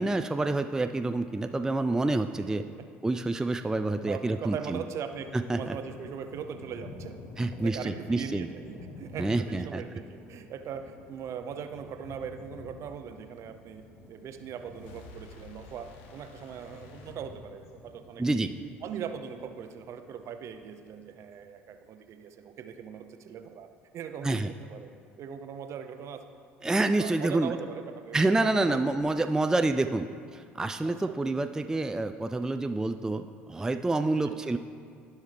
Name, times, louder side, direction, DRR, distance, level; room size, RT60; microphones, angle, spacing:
voice 1, 0.0-2.6 3.0-4.8 5.3-5.8 7.4-8.5 9.2-9.8 18.2-18.5 24.2-24.5 26.6-27.5 28.1-34.6, right 2 dB, 10° right, 8 dB, 0.3 m, -28 dB
voice 2, 4.0-13.8 14.1-18.2 18.8-23.7 23.9-24.9 25.2-26.2 27.0-28.8 30.8-31.1 34.2-34.4, right 7 dB, 50° right, 8 dB, 0.6 m, -40 dB
sound 1, 5.0-21.1, left 3 dB, 55° left, 1.1 m, -50 dB
sound 2, 14.2-17.9, left 3 dB, 75° left, 0.7 m, -52 dB
15.0 x 5.6 x 3.3 m, 2.3 s
hypercardioid pair, 60°, 6 cm